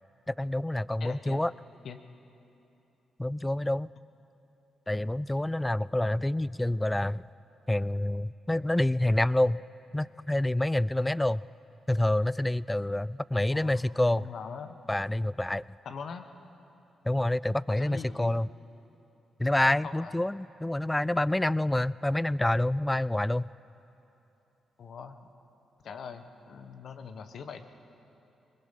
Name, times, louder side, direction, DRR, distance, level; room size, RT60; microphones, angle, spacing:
voice 1, 0.3-1.5 3.2-3.9 4.9-7.2 7.7-9.6 9.9-11.4 11.9-14.2 14.9-15.6 17.1-18.5 19.4-23.5, left 1 dB, 15° left, 21 dB, 0.4 m, -27 dB
voice 2, 1.0-1.4 1.8-2.0 13.5-13.9 14.2-14.8 15.8-16.3 17.7-18.4 19.5-20.2 24.8-25.2 25.8-27.6, left 6 dB, 65° left, 8 dB, 1.2 m, -42 dB
22.0 x 21.0 x 5.8 m, 3.0 s
supercardioid pair, 55°, 0 cm